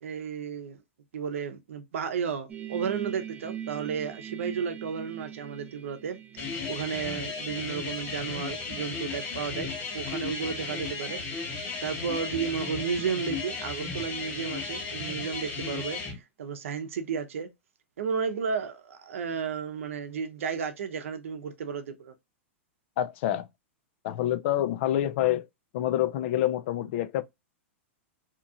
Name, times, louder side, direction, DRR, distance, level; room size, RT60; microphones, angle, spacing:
voice 1, 0.0-0.8 1.1-9.7 9.9-11.2 11.8-17.5 18.0-22.1, right 6 dB, 80° right, 0.6 m, -33 dB
sound 1, 2.5-10.0 10.2-10.5, right 10 dB, 20° right, 0.5 m, -43 dB
sound 2, 6.4-16.1, left 4 dB, 40° left, 1.6 m, -35 dB
voice 2, 23.0-23.5 24.0-25.5 25.7-27.2, left 12 dB, 60° left, 0.4 m, -27 dB
2.8 x 2.4 x 2.6 m
hypercardioid pair, 125°, 7 cm